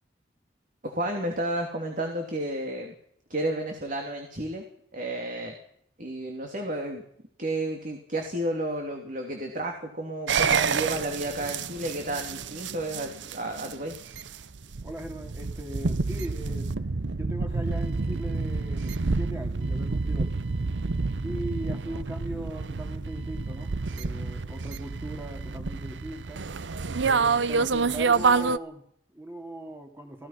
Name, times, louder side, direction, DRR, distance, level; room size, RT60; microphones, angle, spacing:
voice 1, 0.8-2.9 3.3-4.6 4.9-5.5 6.0-7.0 7.4-14.0, right 1 dB, 45° right, 3 dB, 2.9 m, -32 dB
sound 1, 10.3-28.6, right 4 dB, 90° right, 0.7 m, -28 dB
voice 2, 14.8-16.8 17.1-20.4 21.2-26.4 27.0-30.3, right 1 dB, 15° right, 3 dB, 2.9 m, -39 dB
27.0 x 17.0 x 5.9 m, 0.67 s
head